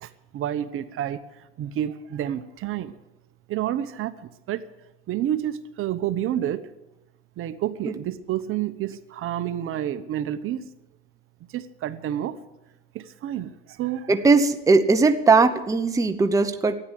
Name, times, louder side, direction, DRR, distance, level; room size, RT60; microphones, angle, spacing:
voice 1, 0.0-1.2 1.6-2.9 3.5-4.6 5.1-6.7 7.4-10.7 11.5-12.4 12.9-14.1, right 11 dB, 45° right, 12 dB, 0.9 m, -29 dB
voice 2, 14.1-16.8, right 4 dB, 10° right, 7 dB, 0.8 m, -19 dB
13.0 x 9.7 x 9.9 m, 0.99 s
supercardioid pair, 120°, 29 cm